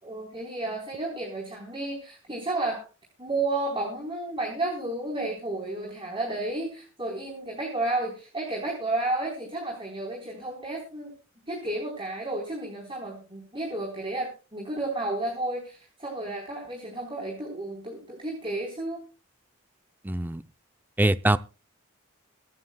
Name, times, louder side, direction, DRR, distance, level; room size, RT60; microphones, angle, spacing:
voice 1, 0.0-2.8 3.2-11.1 11.5-19.0, right 2 dB, 25° right, 4.2 m, -32 dB
voice 2, 20.0-20.4 21.0-21.4, right 1 dB, 10° right, 0.5 m, -23 dB
24.5 x 9.4 x 2.3 m
head